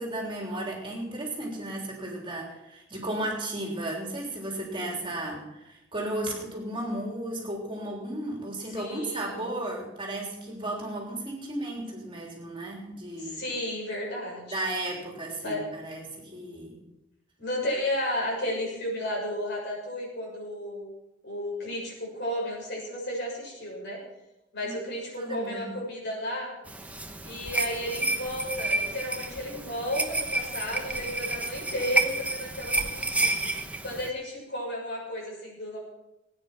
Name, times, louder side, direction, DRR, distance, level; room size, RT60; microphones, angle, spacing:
voice 1, 0.0-13.4 14.5-16.8 24.6-24.7 25.2-25.7, right 1 dB, 25° right, -1 dB, 3.4 m, -34 dB
voice 2, 8.7-9.7 13.2-14.6 15.4-15.7 17.4-20.9 21.2-24.0 24.5-26.6 27.2-33.4 33.8-35.8, left 1 dB, 60° left, -2 dB, 6.6 m, -33 dB
sound 1, 26.7-34.1, right 2 dB, 5° right, 1.0 m, -30 dB
19.0 x 9.7 x 6.0 m, 0.93 s
head